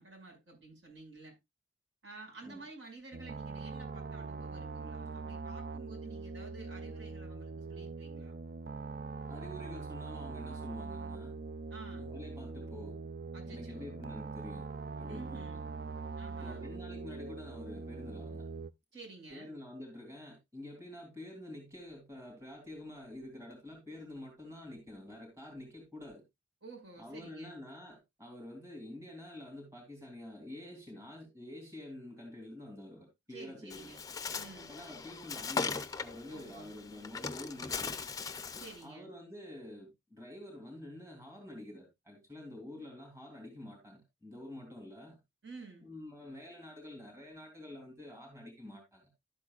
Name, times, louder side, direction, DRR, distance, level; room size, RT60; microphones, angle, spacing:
voice 1, 0.0-1.4 2.0-8.4 11.7-12.1 13.3-14.0 15.0-15.6 16.2-16.6 18.9-19.6 26.6-27.6 33.3-34.0 34.3-34.7 36.3-36.7 38.6-39.1 45.4-45.9, right 3 dB, 70° right, 5.6 m, -51 dB
sound 1, 3.1-18.7, right 4 dB, 50° right, 0.4 m, -42 dB
voice 2, 9.2-11.4 11.9-13.0 13.4-14.7 14.9-15.5 16.3-18.4 19.3-26.2 27.0-33.9 34.7-38.1 38.8-45.2 45.8-49.1, left 1 dB, 15° right, 3.3 m, -48 dB
Bird, 33.7-38.8, left 5 dB, 20° left, 0.5 m, -39 dB
12.0 x 8.4 x 2.4 m
head